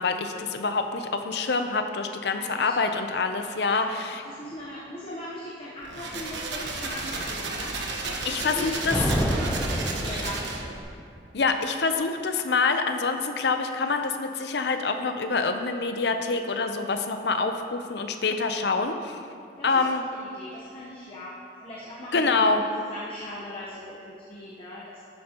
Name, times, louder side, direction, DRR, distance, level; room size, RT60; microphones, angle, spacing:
voice 1, 0.0-4.2 8.2-9.0 11.3-19.2 19.6-20.0 22.1-22.6, left 4 dB, 65° left, 6 dB, 0.6 m, -26 dB
voice 2, 2.3-2.8 3.4-8.7 9.1-9.3 9.7-10.6 19.6-22.5 22.9-25.0, left 1 dB, 30° left, -6 dB, 1.0 m, -40 dB
sound 1, 5.8-10.8, right 3 dB, 75° right, 1.1 m, -33 dB
Thunder, 8.5-10.8, equal, 5° left, 0.6 m, -28 dB
12.0 x 8.7 x 3.0 m, 2.4 s
head